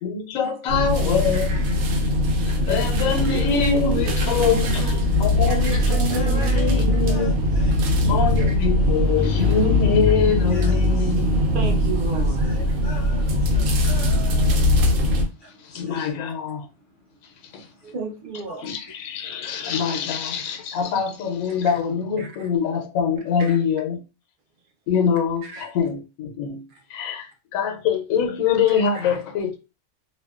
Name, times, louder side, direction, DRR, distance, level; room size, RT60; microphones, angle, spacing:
voice 1, 0.0-1.6 2.5-4.8 5.2-7.4 8.1-11.3 15.6-16.7 17.5-17.7 18.6-24.0 24.9-26.6 26.9-29.6, left 6 dB, 80° left, 1.0 m, -24 dB
sound 1, 0.7-15.3, left 1 dB, 85° right, 1.1 m, -21 dB
voice 2, 1.2-1.8 4.2-6.1 6.4-6.7 8.4-8.5 9.3-9.4 11.5-12.8 17.9-18.7 21.6-21.8 22.2-22.5 23.4-23.6 25.4-25.7 26.7-26.8 28.7-29.0, right 4 dB, 50° right, 0.7 m, -35 dB
voice 3, 5.8-8.1 10.5-11.3 12.4-14.8 15.1-16.2 17.5-17.9 18.5-18.7, left 1 dB, 50° left, 0.7 m, -41 dB
2.6 x 2.2 x 2.3 m
omnidirectional pair, 1.4 m